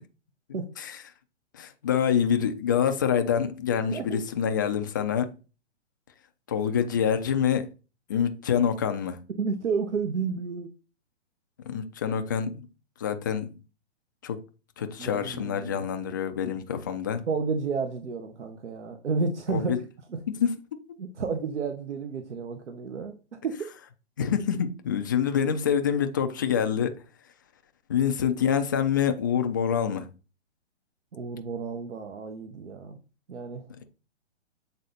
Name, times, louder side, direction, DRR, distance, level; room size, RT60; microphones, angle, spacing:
voice 1, 1.5-5.3 6.5-7.7 8.1-9.2 11.7-12.6 13.0-13.5 14.2-14.4 14.8-17.2 19.5-19.8 20.4-20.5 24.2-26.9 27.9-30.1, left 8 dB, 20° left, 0.3 m, -26 dB
voice 2, 3.9-4.2 9.4-10.7 15.0-15.9 17.3-19.8 20.1-20.2 21.0-23.1 23.4-23.6 31.1-33.0 33.3-33.7, right 5 dB, 75° right, 1.3 m, -31 dB
7.8 x 4.0 x 4.1 m
hypercardioid pair, 140°, 35 cm